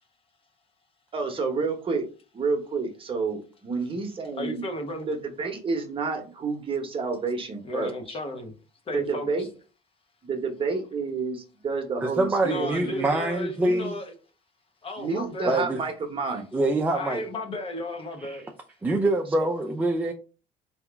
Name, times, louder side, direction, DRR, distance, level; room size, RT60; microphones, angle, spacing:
voice 1, 1.1-2.1 2.3-4.6 5.1-8.2 8.9-9.5 10.2-12.7 15.0-16.5 19.4-19.5, right 4 dB, 30° right, 1.0 m, -29 dB
voice 2, 4.3-5.1 7.6-8.5 8.9-9.5 12.4-14.1 14.8-15.6 16.9-18.4, left 1 dB, 35° left, 1.0 m, -34 dB
voice 3, 12.0-14.0 15.5-15.8 16.5-17.2 18.2-18.4 18.8-20.1, right 2 dB, 10° right, 0.5 m, -25 dB
3.4 x 2.9 x 3.5 m
cardioid pair, 105°, 17 cm